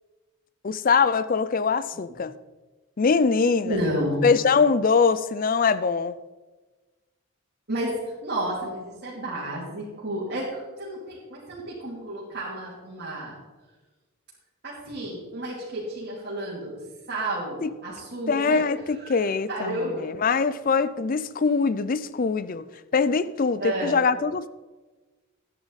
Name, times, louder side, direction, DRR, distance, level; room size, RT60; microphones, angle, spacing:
voice 1, 0.6-2.4 3.0-3.8 4.2-6.2 17.6-17.7 18.3-24.5, left 5 dB, 40° left, 15 dB, 0.4 m, -23 dB
voice 2, 3.6-4.3 7.7-13.4 14.6-16.8 17.1-18.7 19.0-20.0 23.6-24.0, right 1 dB, 50° right, -8 dB, 3.0 m, -31 dB
13.0 x 9.8 x 4.1 m, 1.2 s
head